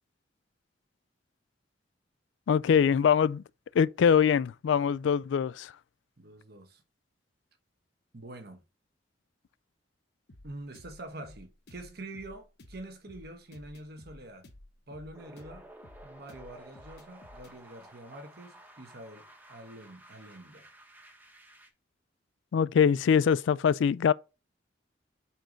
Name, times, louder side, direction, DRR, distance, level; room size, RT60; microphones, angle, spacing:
voice 1, 2.5-3.4 3.7-5.7 22.5-24.1, left 7 dB, 80° left, 0.3 m, -23 dB
voice 2, 6.2-6.8 8.1-8.6 10.4-14.5 14.9-15.7 16.0-20.7, right 1 dB, 55° right, 1.2 m, -46 dB
sound 1, 10.3-17.6, left 1 dB, 60° left, 1.1 m, -53 dB
sound 2, 15.1-21.7, right 1 dB, 10° right, 0.9 m, -53 dB
4.5 x 4.5 x 5.1 m
head